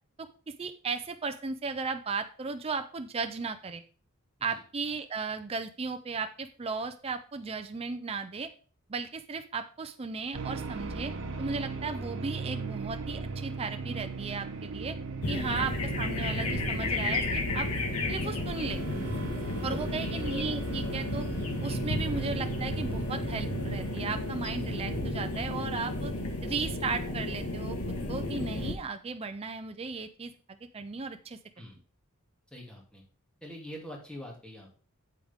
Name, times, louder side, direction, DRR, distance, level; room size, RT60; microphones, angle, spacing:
voice 1, 0.6-3.8 4.4-8.5 8.9-11.1 11.4-15.0 15.3-17.7 18.1-18.8 19.6-21.2 21.6-26.1 26.4-27.8 28.1-31.4, right 4 dB, 25° right, 7 dB, 0.5 m, -35 dB
sound 1, 10.3-26.2, right 4 dB, 60° right, 1.0 m, -38 dB
sound 2, 15.2-28.7, left 2 dB, 80° left, 1.7 m, -33 dB
voice 2, 19.7-20.1 31.6-31.8 32.5-33.0 33.4-34.7, equal, 5° left, -1 dB, 2.4 m, -45 dB
8.4 x 7.9 x 3.5 m, 0.39 s
head